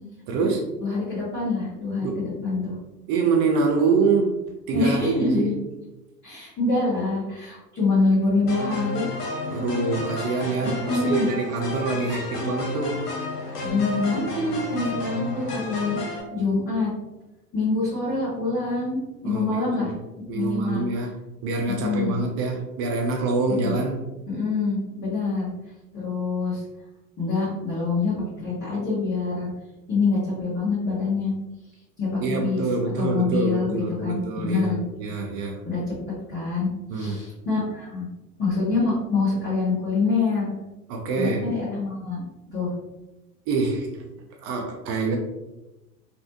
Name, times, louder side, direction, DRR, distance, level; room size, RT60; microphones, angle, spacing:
voice 1, 0.3-0.7 2.0-2.3 3.1-4.4 4.7-5.6 9.5-13.0 19.2-20.0 20.3-24.1 32.2-35.6 36.9-37.2 40.9-41.5 43.5-44.0 44.4-45.2, right 4 dB, 35° right, 1 dB, 0.4 m, -25 dB
voice 2, 0.8-2.7 4.7-5.5 6.2-9.1 10.6-11.3 13.6-16.0 16.3-16.9 17.5-19.9 20.3-20.8 21.7-22.2 23.5-23.7 24.3-25.5 25.9-26.6 27.2-29.5 29.9-31.3 32.0-32.6 33.0-34.8 35.6-35.8 36.3-36.7 36.9-38.0 38.4-40.6 41.1-42.2 42.5-42.7, left 3 dB, 25° left, -11 dB, 1.4 m, -25 dB
sound 1, 8.5-16.2, left 2 dB, 75° left, 0.9 m, -31 dB
3.2 x 2.2 x 2.8 m, 0.99 s
figure-of-eight pair, 85°, 47 cm